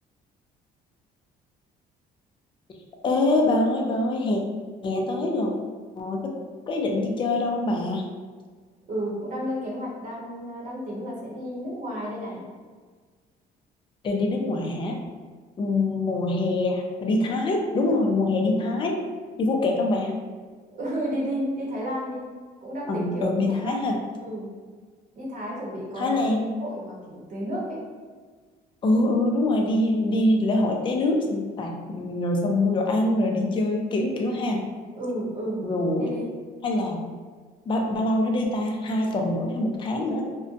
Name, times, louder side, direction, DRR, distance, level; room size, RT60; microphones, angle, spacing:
voice 1, 3.0-4.4 4.8-5.5 6.0-6.3 6.7-8.1 14.0-15.0 15.6-19.0 19.4-20.2 22.9-24.0 26.0-26.5 28.8-34.6 35.6-36.2 36.6-37.0 37.7-40.3, left 2 dB, 30° left, 1 dB, 0.4 m, -24 dB
voice 2, 8.9-12.4 20.7-22.2 22.6-23.8 24.2-24.5 25.2-27.8 34.9-35.6 36.0-36.3, equal, 50° right, -4 dB, 0.9 m, -32 dB
2.5 x 2.1 x 2.5 m, 1.5 s
cardioid pair, 110°, 17 cm